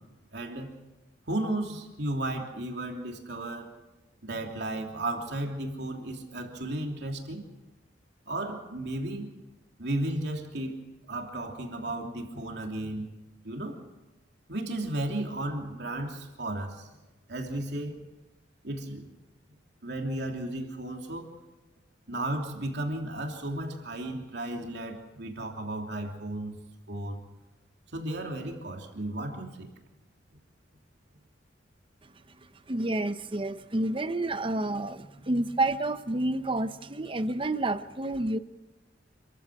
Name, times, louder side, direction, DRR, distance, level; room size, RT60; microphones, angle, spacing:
voice 1, 0.3-0.7 1.3-3.7 4.2-7.5 8.3-9.3 9.8-10.8 11.1-13.1 13.4-13.8 14.5-16.9 17.3-18.0 18.6-19.1 19.8-21.3 22.1-26.6 26.9-27.2 27.9-29.7, right 1 dB, 65° right, 3.1 m, -34 dB
voice 2, 32.7-38.4, right 2 dB, 30° right, 0.8 m, -29 dB
27.5 x 15.0 x 6.4 m
head